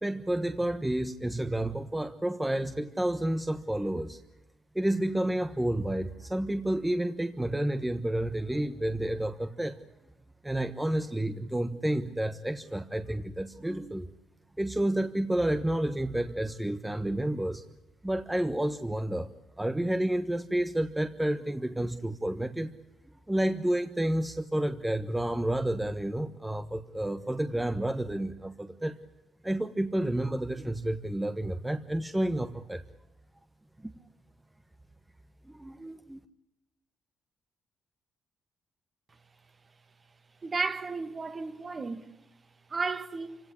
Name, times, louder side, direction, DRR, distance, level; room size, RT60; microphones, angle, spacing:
voice 1, 0.0-4.2 4.7-9.8 10.4-14.1 14.6-17.6 18.0-19.3 19.6-22.7 23.3-29.0 29.4-32.8 33.8-33.9 35.4-36.2, right 1 dB, 10° right, 1.2 m, -30 dB
voice 2, 40.4-42.0 42.7-43.4, right 4 dB, 35° right, 1.9 m, -33 dB
27.0 x 17.0 x 9.9 m
cardioid pair, 90°, 0 cm